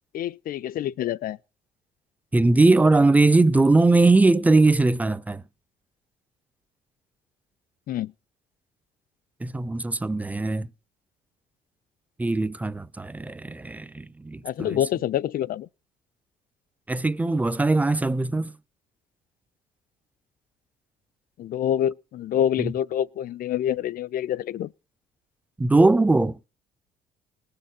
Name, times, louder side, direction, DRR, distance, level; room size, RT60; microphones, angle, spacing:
voice 1, 0.1-1.4 7.9-8.1 14.4-15.7 21.4-24.7, left 11 dB, 60° left, 0.7 m, -26 dB
voice 2, 2.3-5.4 9.4-10.7 12.2-14.8 16.9-18.5 22.6-22.7 25.6-26.4, right 2 dB, 10° right, 0.8 m, -20 dB
19.5 x 6.8 x 7.3 m
cardioid pair, 110°, 17 cm